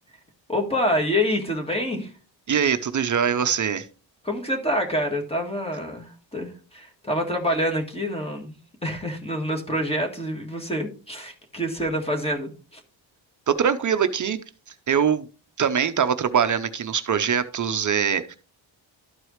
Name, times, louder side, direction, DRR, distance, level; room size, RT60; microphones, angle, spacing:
voice 1, 0.5-2.1 4.2-12.8, equal, 10° left, 3 dB, 1.8 m, -27 dB
voice 2, 2.5-3.9 13.5-14.4 14.9-15.3 15.6-18.4, right 7 dB, 40° right, 10 dB, 0.6 m, -23 dB
12.5 x 4.7 x 3.2 m, 0.36 s
cardioid pair, 120°, 46 cm